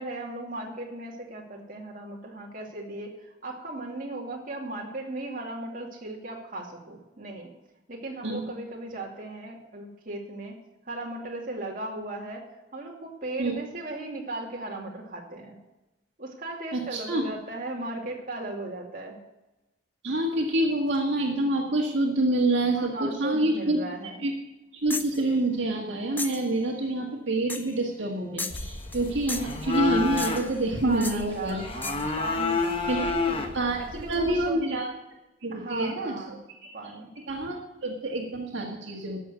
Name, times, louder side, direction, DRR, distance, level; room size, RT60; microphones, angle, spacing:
voice 1, 0.0-7.5 7.9-10.6 10.8-15.6 16.2-19.2 22.8-24.2 30.8-33.4 34.0-34.6 35.5-36.4 36.7-37.1, right 2 dB, 45° right, -2 dB, 2.5 m, -37 dB
voice 2, 16.7-17.3 20.0-23.8 24.2-24.3 24.8-31.6 32.9-33.0 33.5-33.8 34.1-34.9 35.4-36.1 37.3-39.2, right 2 dB, 75° right, 0 dB, 1.7 m, -27 dB
sound 1, 24.9-25.2 26.2-26.5 27.5-27.8 28.4-29.0 29.3-29.6 30.2-30.6 31.0-31.2 31.8-32.1, left 3 dB, 10° left, 0.5 m, -35 dB
sound 2, 28.5-34.5, left 4 dB, 30° left, 1.1 m, -30 dB
12.5 x 6.7 x 8.2 m, 0.99 s
head